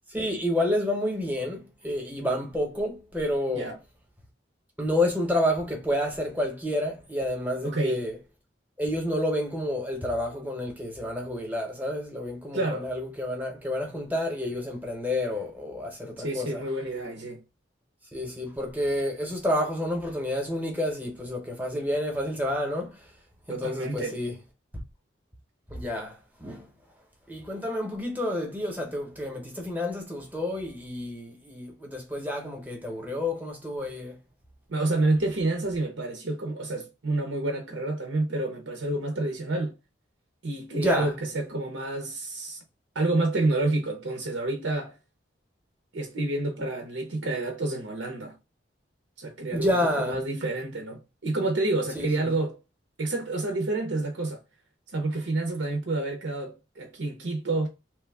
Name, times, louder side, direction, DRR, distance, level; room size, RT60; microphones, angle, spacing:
voice 1, 0.1-3.7 4.8-8.2 8.8-16.6 18.1-23.0 23.5-24.3 24.7-24.8 25.7-26.7 27.3-34.2 40.8-41.1 49.5-50.2 51.9-52.3, left 1 dB, 10° right, 0.8 m, -29 dB
voice 2, 7.6-8.0 12.5-12.9 16.2-17.4 23.5-24.2 34.7-39.8 40.4-42.6 42.9-45.0 45.9-48.4 49.2-52.6 53.0-54.4 54.9-57.7, right 2 dB, 80° right, 0.7 m, -29 dB
3.1 x 2.2 x 3.4 m
head